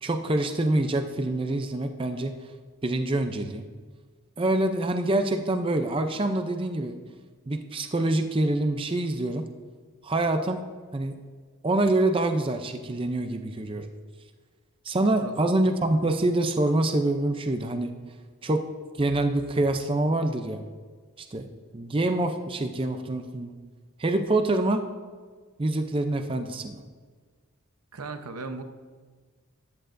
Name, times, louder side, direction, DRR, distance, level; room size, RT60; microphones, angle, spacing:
voice 1, 0.0-2.3 2.8-3.6 4.4-6.9 7.5-9.5 10.0-10.6 10.9-11.1 11.6-13.9 14.8-17.9 18.4-18.7 19.0-20.6 21.2-21.5 21.7-23.5 24.0-24.9 25.6-26.8, right 2 dB, 25° right, 7 dB, 0.5 m, -25 dB
voice 2, 15.1-15.5 27.9-28.6, right 3 dB, 85° right, 8 dB, 0.8 m, -37 dB
14.5 x 10.0 x 2.6 m, 1.5 s
head